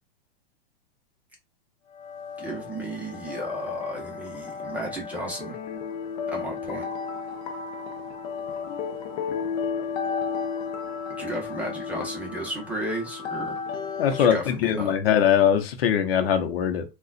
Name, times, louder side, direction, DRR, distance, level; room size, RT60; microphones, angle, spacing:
sound 1, 1.9-14.3, left 6 dB, 45° left, 0.6 m, -33 dB
voice 1, 2.4-5.6 6.3-6.9 11.2-13.6 14.1-15.0, right 1 dB, 5° right, 0.9 m, -33 dB
voice 2, 14.0-16.8, left 8 dB, 80° left, 0.8 m, -21 dB
3.8 x 2.3 x 2.4 m
supercardioid pair, 145°, 30 cm